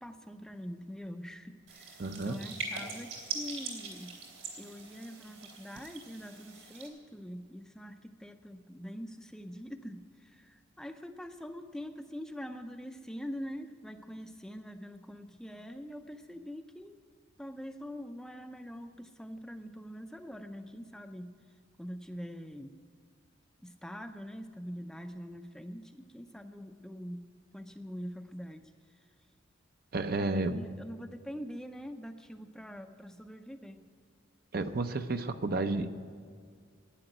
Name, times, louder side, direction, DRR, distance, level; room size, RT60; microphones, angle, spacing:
voice 1, 0.0-4.2 4.6-16.9 17.4-21.3 21.8-22.8 23.6-27.3 27.5-29.1 30.2-33.9, equal, 5° left, 6 dB, 0.5 m, -44 dB
sound 1, 1.7-6.9, right 4 dB, 90° right, 3.2 m, -42 dB
voice 2, 2.0-2.4 29.9-30.6 34.5-35.9, right 2 dB, 50° right, 9 dB, 0.7 m, -31 dB
11.5 x 9.8 x 9.0 m, 2.1 s
head